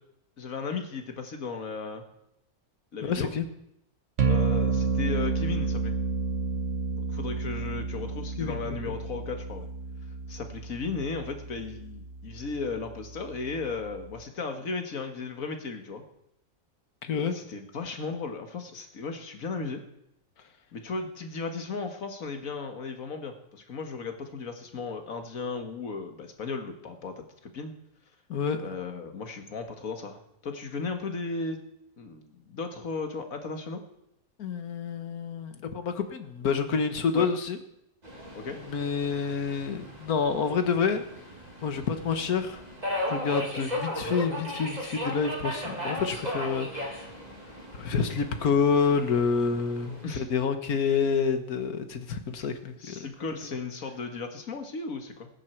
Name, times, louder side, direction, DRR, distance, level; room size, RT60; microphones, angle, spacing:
voice 1, 0.4-2.0 2.9-3.3 4.3-6.0 6.9-9.7 10.3-16.0 17.2-19.8 20.7-27.7 28.6-31.6 32.0-33.8 37.1-37.3 38.3-38.6 50.0-50.3 52.4-52.5 52.7-55.3, left 4 dB, 65° left, 5 dB, 2.0 m, -35 dB
voice 2, 3.0-3.5 8.4-8.8 17.0-17.4 28.3-28.6 34.4-37.6 38.7-41.0 41.6-42.6 43.1-47.0 47.8-53.1, left 5 dB, 80° left, 8 dB, 1.7 m, -28 dB
sound 1, 4.2-14.2, right 4 dB, 55° right, 1.5 m, -31 dB
Subway metro underground, 38.0-50.1, equal, 30° right, 2.7 m, -36 dB
19.5 x 10.0 x 4.5 m, 0.80 s
omnidirectional pair, 1.5 m